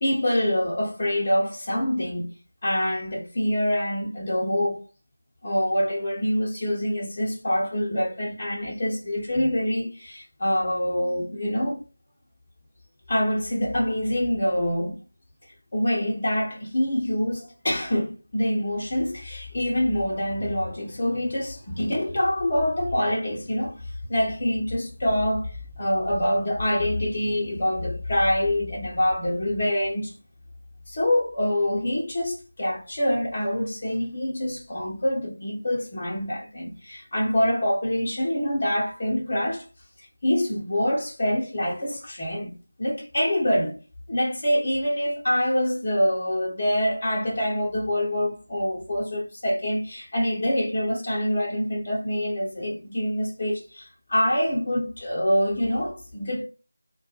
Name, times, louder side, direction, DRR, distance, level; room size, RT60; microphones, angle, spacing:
voice 1, 0.0-2.3 2.6-4.8 5.4-11.8 13.1-15.0 15.7-30.1 30.9-39.6 40.2-42.5 42.8-43.8 44.1-56.4, left 1 dB, 30° left, 0.6 m, -25 dB
3.3 x 2.2 x 2.8 m
figure-of-eight pair, 165°, 0 cm